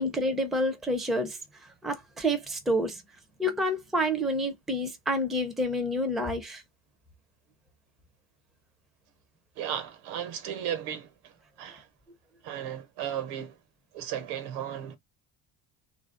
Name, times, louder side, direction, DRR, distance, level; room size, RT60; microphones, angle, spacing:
voice 1, 0.0-1.4 1.8-3.0 3.4-6.6, equal, ahead, 0.5 m, -28 dB
voice 2, 9.6-11.9 12.4-13.6 13.9-15.0, right 10 dB, 80° right, 1.2 m, -35 dB
3.2 x 2.6 x 3.4 m
cardioid pair, 145°, 47 cm